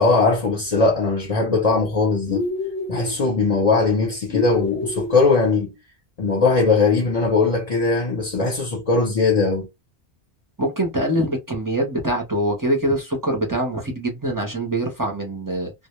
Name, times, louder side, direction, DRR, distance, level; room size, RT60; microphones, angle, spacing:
voice 1, 0.0-2.4 2.9-5.8 6.2-9.7, left 3 dB, 40° left, 0.7 m, -20 dB
sound 1, 2.3-3.2 4.3-5.2, left 3 dB, 70° left, 0.9 m, -27 dB
voice 2, 10.6-15.7, right 1 dB, 25° right, 0.5 m, -24 dB
2.1 x 2.0 x 2.9 m
omnidirectional pair, 1.1 m